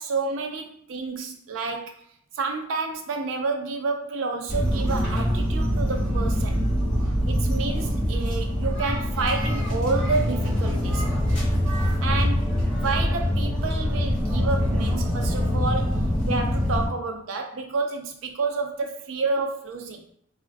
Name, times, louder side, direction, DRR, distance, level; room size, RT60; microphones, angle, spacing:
voice 1, 0.0-1.9 2.3-6.6 7.3-11.1 12.0-20.0, right 4 dB, 75° right, 4 dB, 0.4 m, -29 dB
sound 1, 4.5-16.9, equal, 5° left, 0.9 m, -24 dB
2.4 x 2.1 x 2.5 m, 0.65 s
head